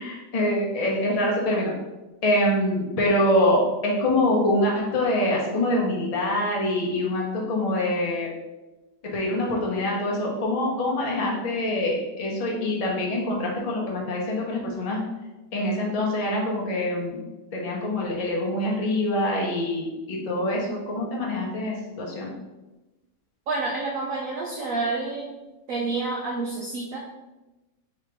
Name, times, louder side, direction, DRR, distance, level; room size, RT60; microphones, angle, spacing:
voice 1, 0.0-1.7 2.2-8.3 9.0-15.0 15.5-17.2 17.5-22.3, left 1 dB, 50° left, -2 dB, 0.4 m, -25 dB
voice 2, 23.5-25.3 25.7-27.0, right 3 dB, 85° right, -1 dB, 0.7 m, -28 dB
3.1 x 2.9 x 4.6 m, 1.1 s
omnidirectional pair, 2.0 m